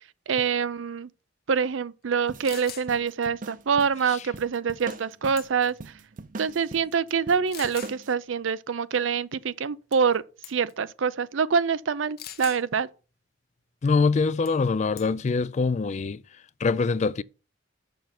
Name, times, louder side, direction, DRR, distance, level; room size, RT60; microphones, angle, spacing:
voice 1, 0.3-1.1 1.5-5.7 6.4-10.2 10.5-12.9, right 6 dB, 85° right, 0.5 m, -25 dB
sound 1, 2.1-2.2 2.4-2.9 4.9-5.1 5.4-5.8 6.5-6.6 7.5-8.0 9.9-10.2 10.4-10.7 12.2-12.6 14.5-14.7 15.0-15.3, left 10 dB, 55° left, 0.9 m, -41 dB
sound 2, 2.3-8.1, right 3 dB, 45° right, 0.7 m, -42 dB
voice 2, 13.8-16.2 16.6-17.2, left 4 dB, 40° left, 0.4 m, -24 dB
6.6 x 6.6 x 5.9 m
head